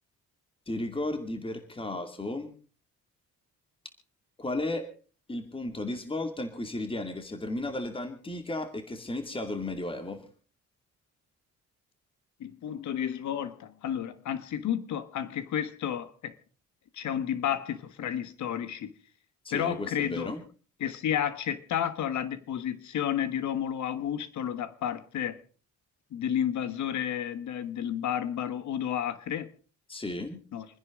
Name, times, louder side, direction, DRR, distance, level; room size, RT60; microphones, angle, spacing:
voice 1, 0.7-2.5 4.4-4.9 5.3-10.3 19.4-20.4 29.9-30.4, left 2 dB, 15° left, 2.4 m, -34 dB
voice 2, 12.4-16.3 16.9-18.9 19.5-20.3 20.8-25.4 26.1-29.5 30.5-30.7, left 9 dB, 70° left, 1.5 m, -31 dB
28.0 x 10.5 x 3.8 m
cardioid pair, 90°, 30 cm